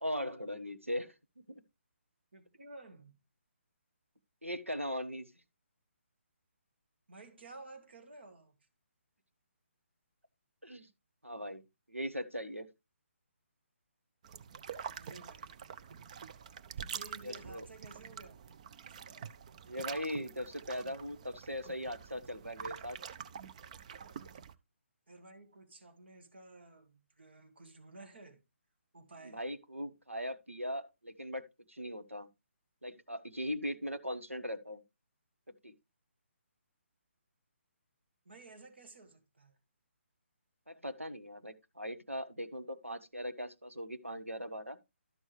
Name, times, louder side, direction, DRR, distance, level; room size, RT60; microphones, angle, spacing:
voice 1, 0.0-1.1 1.5-1.6 4.4-5.3 10.6-10.9 11.2-11.6 11.9-12.7 17.2-17.6 19.7-23.0 29.2-31.4 31.7-32.3 32.8-34.8 35.6-35.7 40.7-44.8, equal, 90° right, 1.1 m, -39 dB
voice 2, 2.3-3.2 7.1-8.7 14.9-15.6 16.9-18.8 25.1-28.4 28.9-29.4 38.3-39.6, right 2 dB, 55° right, 2.0 m, -54 dB
sound 1, 14.2-24.5, right 7 dB, 30° right, 0.5 m, -46 dB
12.5 x 6.3 x 3.2 m
figure-of-eight pair, 140°, 7 cm